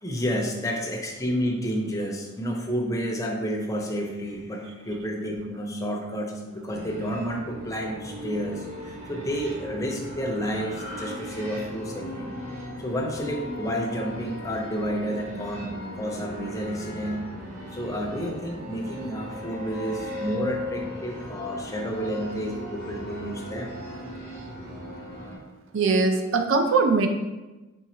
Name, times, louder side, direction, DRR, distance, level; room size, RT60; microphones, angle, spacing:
voice 1, 0.0-12.4 12.8-17.2 17.7-23.7, equal, 15° left, 1 dB, 0.5 m, -30 dB
sound 1, 6.7-25.4, equal, 30° right, 0.9 m, -37 dB
voice 2, 25.7-27.1, right 4 dB, 60° right, 5 dB, 0.5 m, -21 dB
3.9 x 3.6 x 3.1 m, 1.1 s
head